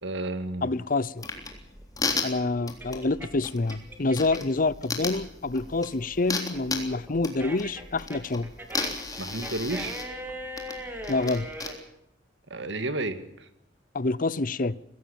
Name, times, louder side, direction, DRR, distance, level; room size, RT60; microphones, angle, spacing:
voice 1, 0.0-0.7 9.2-10.0 12.5-13.5, right 2 dB, 75° right, 11 dB, 2.1 m, -32 dB
voice 2, 0.6-1.2 2.2-8.5 11.1-11.5 13.9-14.8, left 3 dB, 50° left, 19 dB, 0.7 m, -27 dB
sound 1, 1.2-11.7, left 3 dB, 20° left, 3.5 m, -35 dB
sound 2, 1.2-4.6 5.0-11.8, equal, 10° right, 3.2 m, -40 dB
23.0 x 17.0 x 7.1 m, 0.79 s
head